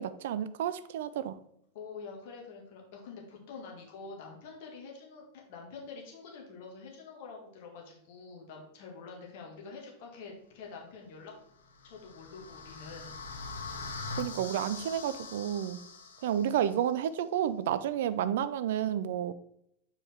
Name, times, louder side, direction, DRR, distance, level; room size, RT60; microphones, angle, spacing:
voice 1, 0.0-1.4 14.2-15.8 16.2-19.3, right 10 dB, 55° right, 14 dB, 0.4 m, -31 dB
voice 2, 1.7-11.3 11.8-13.2, left 4 dB, 50° left, 0 dB, 1.7 m, -46 dB
sound 1, 11.6-16.7, left 4 dB, 65° left, 0.8 m, -43 dB
6.8 x 4.8 x 3.4 m, 0.72 s
figure-of-eight pair, 90°, 0 cm